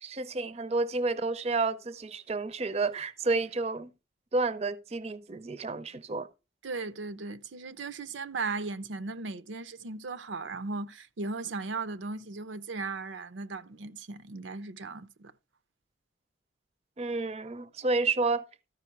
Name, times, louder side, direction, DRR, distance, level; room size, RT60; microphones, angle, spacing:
voice 1, 0.0-3.9 4.3-6.3 17.0-18.4, right 3 dB, 35° right, 0.5 m, -30 dB
voice 2, 6.6-15.3, right 3 dB, 85° right, 0.6 m, -37 dB
13.5 x 5.3 x 4.5 m
head